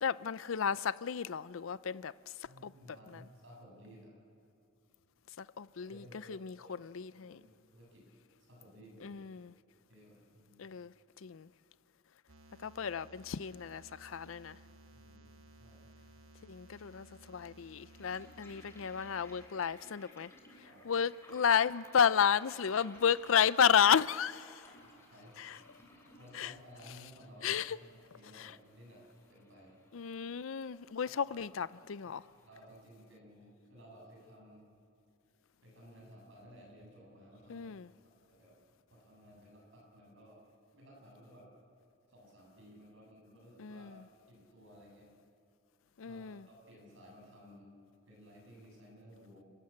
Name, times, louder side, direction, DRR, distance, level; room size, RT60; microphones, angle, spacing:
voice 1, 0.0-2.1 2.6-2.7 3.1-3.2 5.4-6.0 6.3-7.4 9.0-9.5 10.6-10.9 11.2-11.5 12.6-14.6 16.4-20.3 20.8-24.6 25.4-25.6 26.3-26.5 27.4-27.8 28.3-28.5 29.9-32.2 37.5-37.9 43.6-43.9 46.0-46.5, left 7 dB, 70° left, 0.5 m, -32 dB
voice 2, 2.5-4.1 5.8-6.4 6.6-6.7 7.1-8.1 8.5-9.2 9.9-10.7 14.5-15.3 15.6-15.9 20.6-21.0 24.8-25.4 26.1-29.0 29.3-29.8 31.0-31.4 32.0-32.1 32.4-34.7 35.6-37.7 38.0-38.6 38.9-40.4 40.7-41.5 42.1-44.0 44.3-45.1 46.0-47.7 48.1-49.5, equal, 65° right, 7.7 m, -56 dB
sound 1, 12.3-19.5, right 1 dB, 85° right, 1.3 m, -58 dB
sound 2, 17.2-32.6, left 1 dB, 15° left, 3.5 m, -60 dB
30.0 x 14.5 x 8.6 m
head